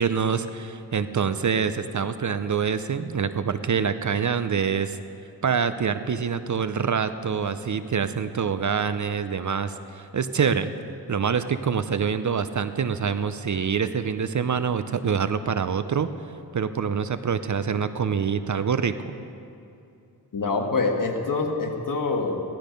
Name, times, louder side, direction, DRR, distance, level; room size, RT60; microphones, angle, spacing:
voice 1, 0.0-5.0 5.4-10.7 11.1-16.1 16.5-19.2, right 6 dB, 45° right, 12 dB, 0.6 m, -25 dB
voice 2, 20.3-22.4, left 3 dB, 50° left, 3 dB, 1.7 m, -25 dB
15.5 x 12.0 x 5.2 m, 2.6 s
cardioid pair, 70°, 41 cm